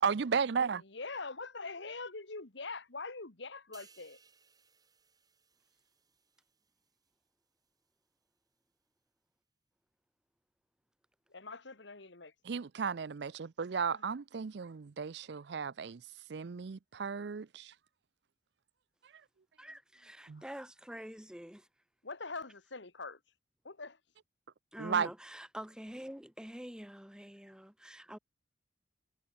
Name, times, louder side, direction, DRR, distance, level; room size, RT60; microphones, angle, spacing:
voice 1, 0.0-0.8 12.4-16.0 16.3-17.7 20.3-20.4 24.8-25.1, right 6 dB, 60° right, 0.5 m, -34 dB
voice 2, 0.8-4.2 11.3-12.3 13.9-14.0 20.4-20.5 22.0-23.2 23.6-24.0, left 3 dB, 70° left, 1.9 m, -43 dB
sound 1, 3.7-7.3 7.6-7.9, right 6 dB, 20° right, 3.5 m, -64 dB
voice 3, 19.6-21.7 24.7-28.2, equal, 5° right, 1.3 m, -46 dB
head